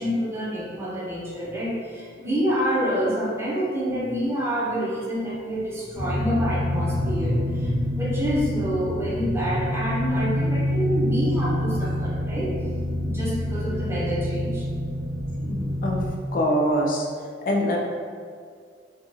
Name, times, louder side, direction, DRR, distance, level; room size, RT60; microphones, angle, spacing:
voice 1, 0.0-12.5 13.0-14.7, equal, 15° right, -6 dB, 0.6 m, -27 dB
sound 1, 5.9-16.1, left 1 dB, 25° left, 0.8 m, -27 dB
voice 2, 15.5-16.0 16.3-17.0 17.4-17.8, equal, 50° left, -1 dB, 0.4 m, -23 dB
2.6 x 2.3 x 3.0 m, 2.1 s
head